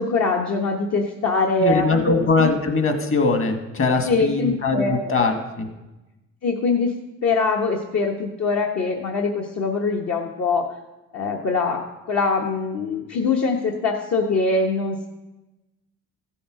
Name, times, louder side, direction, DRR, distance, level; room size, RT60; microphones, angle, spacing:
voice 1, 0.0-2.5 4.0-5.2 6.4-6.9 7.2-10.7 11.1-11.8 12.1-15.1, left 4 dB, 60° left, 0 dB, 1.2 m, -23 dB
voice 2, 1.6-5.7, left 3 dB, 45° left, 5 dB, 1.8 m, -21 dB
14.5 x 7.1 x 4.9 m, 1.0 s
cardioid pair, 90°, 30 cm